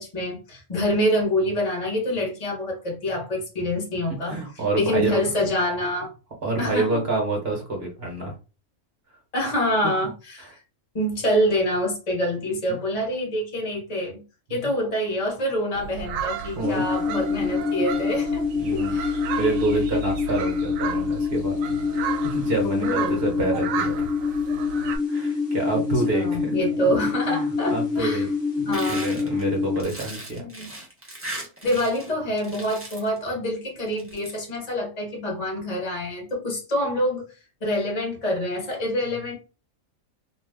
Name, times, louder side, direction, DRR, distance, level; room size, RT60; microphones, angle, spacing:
voice 1, 0.0-4.4 4.7-6.1 6.6-7.0 9.3-10.5 10.9-14.2 14.5-19.2 22.6-23.2 25.8-28.3 28.7-29.2 30.4-30.7 31.6-37.3 37.6-39.4, equal, 30° left, 1.0 m, -26 dB
voice 2, 4.1-5.2 6.4-8.3 9.8-9.9 12.7-12.8 14.5-14.7 16.6-16.8 18.6-19.0 19.4-24.1 25.1-26.5 27.2-28.3 28.6-30.4, right 2 dB, 55° right, 1.1 m, -28 dB
sound 1, 15.7-25.0, right 6 dB, 85° right, 1.0 m, -33 dB
sound 2, 16.6-29.8, left 5 dB, 55° left, 0.8 m, -26 dB
sound 3, 28.7-32.1 32.4-33.2 33.9-34.3, right 1 dB, 15° right, 0.6 m, -37 dB
2.6 x 2.2 x 3.4 m
omnidirectional pair, 1.4 m